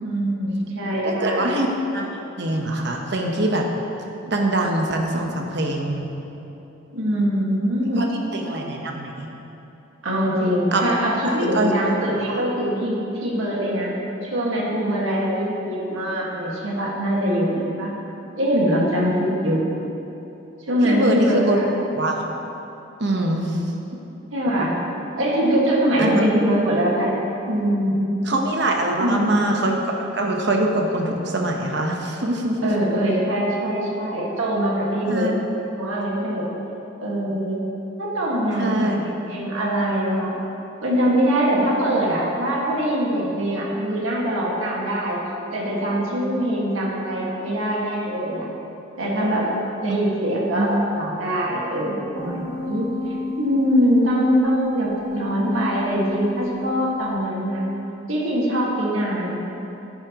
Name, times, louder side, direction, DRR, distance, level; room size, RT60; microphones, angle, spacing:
voice 1, 0.0-1.5 6.9-8.0 10.0-13.9 14.2-17.9 18.4-19.6 20.7-21.6 24.3-24.8 25.2-28.1 29.0-29.3 32.6-35.3 35.7-36.5 37.0-37.6 38.0-39.0 39.3-40.4 40.8-45.2 45.5-48.5 49.0-49.5 49.8-52.9 53.4-57.7 58.1-59.4, equal, 85° right, -4 dB, 1.8 m, -23 dB
voice 2, 1.0-1.7 1.9-2.1 2.4-3.7 4.3-6.1 8.0-9.3 10.7-10.8 11.2-11.7 12.1-12.2 20.8-21.6 22.0-22.2 23.0-23.6 26.0-26.2 28.3-32.7 35.1-35.3 38.6-39.1 49.9-50.0 50.5-50.8, right 1 dB, 60° right, 1 dB, 1.0 m, -23 dB
sound 1, 52.1-56.7 57.1-57.2, left 3 dB, 15° right, 0.9 m, -31 dB
11.5 x 9.5 x 3.0 m, 2.9 s
head